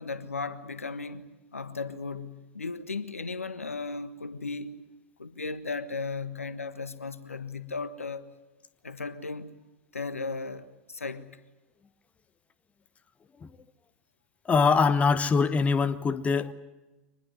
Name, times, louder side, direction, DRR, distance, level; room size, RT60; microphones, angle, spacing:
voice 1, 0.0-4.8 5.2-8.3 8.8-9.5 9.9-11.4, left 4 dB, 85° left, 1.4 m, -36 dB
voice 2, 14.4-16.5, left 5 dB, 20° left, 1.2 m, -23 dB
24.5 x 20.5 x 9.4 m
figure-of-eight pair, 95°, 7 cm